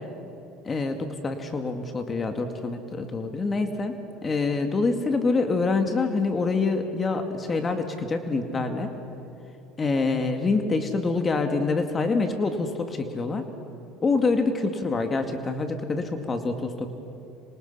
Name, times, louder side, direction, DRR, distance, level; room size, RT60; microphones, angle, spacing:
voice 1, 0.6-8.9 9.8-13.5 14.0-16.9, left 3 dB, 30° left, 6 dB, 2.2 m, -26 dB
26.0 x 26.0 x 5.7 m, 2.8 s
hypercardioid pair, 80°, 0 cm